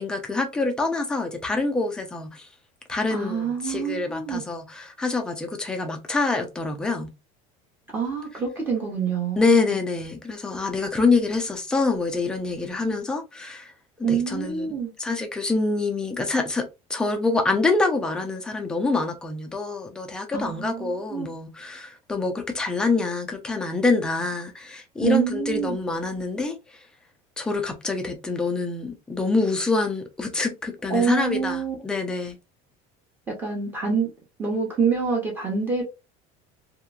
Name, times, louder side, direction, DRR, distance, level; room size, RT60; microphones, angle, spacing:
voice 1, 0.0-2.5 2.9-7.1 9.4-13.7 14.0-26.8 27.4-32.3, left 3 dB, 5° left, 0.3 m, -26 dB
voice 2, 3.1-4.4 7.9-9.8 14.0-14.9 20.3-21.3 25.0-25.8 30.9-31.8 33.4-34.1 34.4-35.8, right 6 dB, 10° right, 0.7 m, -26 dB
2.9 x 2.4 x 2.2 m
cardioid pair, 175°, 17 cm